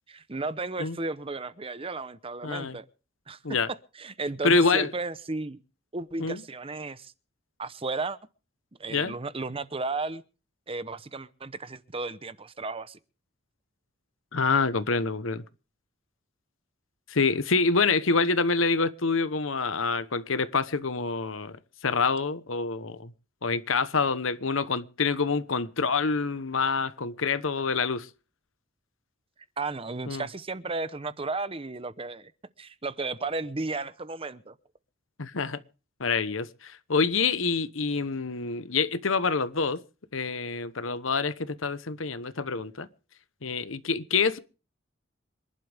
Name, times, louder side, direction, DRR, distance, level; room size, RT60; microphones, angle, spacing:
voice 1, 0.1-2.9 3.3-3.4 4.0-5.6 5.9-7.1 7.6-8.2 8.8-10.2 10.7-13.0 29.6-32.3 32.6-34.5, right 3 dB, 30° right, 0.9 m, -34 dB
voice 2, 2.4-2.8 3.4-3.7 4.4-4.9 6.2-6.4 8.9-9.2 14.3-15.4 17.1-23.1 23.4-28.1 30.1-30.3 35.2-35.6 36.0-39.8 40.1-42.9 43.4-44.4, left 4 dB, 80° left, 1.1 m, -26 dB
26.5 x 11.5 x 3.5 m
head